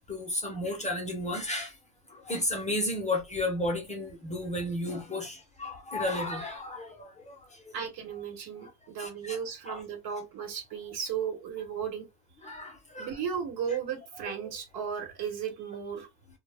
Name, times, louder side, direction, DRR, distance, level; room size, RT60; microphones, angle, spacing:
voice 1, 0.1-1.8 2.1-7.7 8.6-8.7 9.0-9.4 9.6-9.8 12.4-13.1 14.2-14.3, left 1 dB, 15° left, 0.5 m, -33 dB
voice 2, 7.7-12.1 13.0-16.1, right 7 dB, 60° right, 1.0 m, -35 dB
2.1 x 2.0 x 3.3 m
cardioid pair, 135°, 43 cm